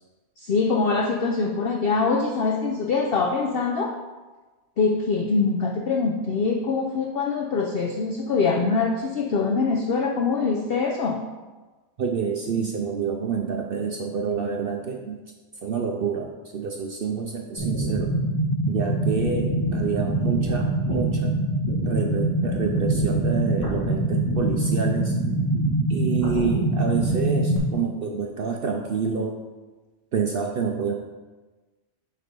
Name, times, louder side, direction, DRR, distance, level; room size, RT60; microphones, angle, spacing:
voice 1, 0.4-3.9 4.8-11.2, left 4 dB, 55° left, 0 dB, 0.7 m, -24 dB
voice 2, 12.0-15.2 15.6-18.1 18.7-21.5 21.8-25.1 25.9-29.4 30.1-30.9, right 6 dB, 60° right, 2 dB, 0.6 m, -28 dB
sound 1, 17.6-27.6, right 1 dB, 15° left, 1.4 m, -24 dB
8.1 x 3.4 x 5.1 m, 1.3 s
omnidirectional pair, 1.4 m